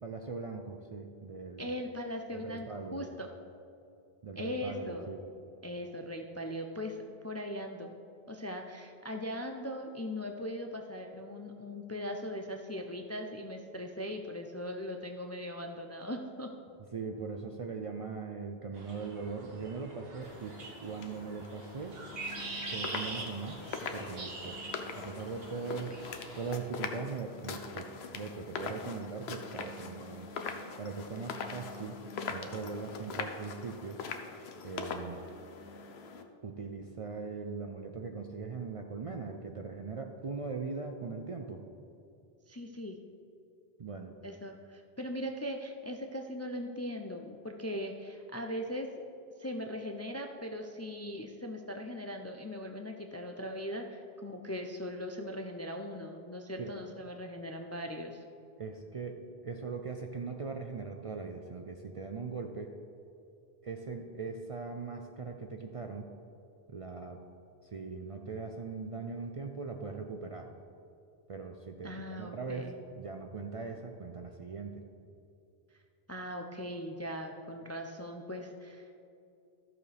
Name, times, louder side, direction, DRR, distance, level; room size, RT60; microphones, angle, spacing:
voice 1, 0.0-1.7 2.3-3.1 4.2-5.2 16.9-22.0 22.7-23.6 23.9-24.6 25.0-26.0 26.3-30.3 30.8-32.0 32.3-34.0 34.6-35.2 36.4-41.6 43.8-44.1 56.6-56.7 58.6-62.7 63.6-66.1 66.7-67.2 67.6-70.5 71.3-74.8, right 4 dB, 45° right, 3 dB, 0.5 m, -40 dB
voice 2, 1.6-3.3 4.4-5.1 5.6-8.0 8.3-16.5 42.5-43.0 44.2-48.9 49.4-58.2 71.8-72.7 76.1-78.9, equal, 25° left, 3 dB, 0.4 m, -39 dB
sound 1, 18.7-26.6, right 3 dB, 70° right, 1.5 m, -44 dB
sound 2, 20.2-36.2, left 5 dB, 85° left, 1.0 m, -42 dB
13.5 x 6.8 x 3.4 m, 2.6 s
omnidirectional pair, 1.0 m